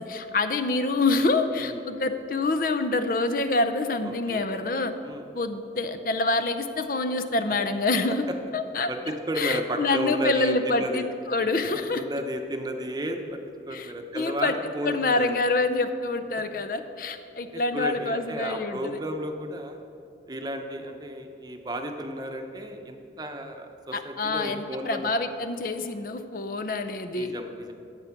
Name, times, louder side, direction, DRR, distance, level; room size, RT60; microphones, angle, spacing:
voice 1, 0.0-4.9 5.3-8.2 8.5-8.9 9.4-12.0 13.7-14.5 14.8-19.0 23.9-27.3, left 3 dB, 50° left, 9 dB, 0.6 m, -26 dB
voice 2, 4.0-4.5 5.0-5.2 8.9-11.1 11.7-13.4 13.7-15.4 17.7-19.8 20.3-25.1 27.1-27.7, equal, 20° right, 4 dB, 0.8 m, -33 dB
12.0 x 8.3 x 5.9 m, 2.8 s
head